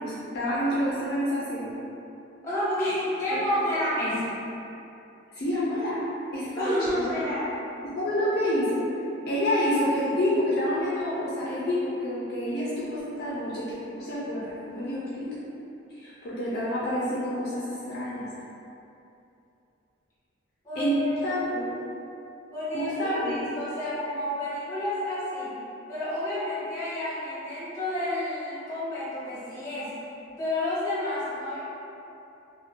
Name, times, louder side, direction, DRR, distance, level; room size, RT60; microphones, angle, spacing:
voice 1, 0.0-1.7 3.3-3.4 5.3-6.0 6.3-7.1 8.0-8.8 9.3-13.6 14.0-15.3 16.0-18.3 20.8-21.7 22.7-23.4, equal, 55° left, -8 dB, 0.5 m, -28 dB
voice 2, 2.4-4.3 6.6-7.5 20.6-21.2 22.5-25.5 25.9-29.9 30.4-31.6, left 1 dB, 15° left, -12 dB, 1.2 m, -30 dB
2.6 x 2.2 x 3.5 m, 2.8 s
head